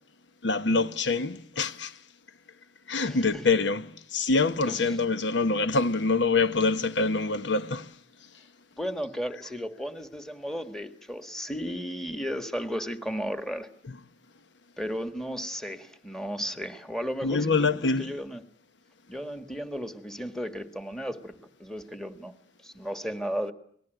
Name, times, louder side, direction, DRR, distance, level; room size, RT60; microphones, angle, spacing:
voice 1, 0.4-1.9 2.9-3.8 4.1-7.9 17.2-18.1, left 3 dB, 65° left, 1.1 m, -25 dB
voice 2, 3.0-3.5 4.6-5.0 8.8-13.7 14.8-18.4 19.1-22.3 22.6-23.5, equal, 5° left, 1.7 m, -34 dB
29.0 x 20.0 x 9.2 m
head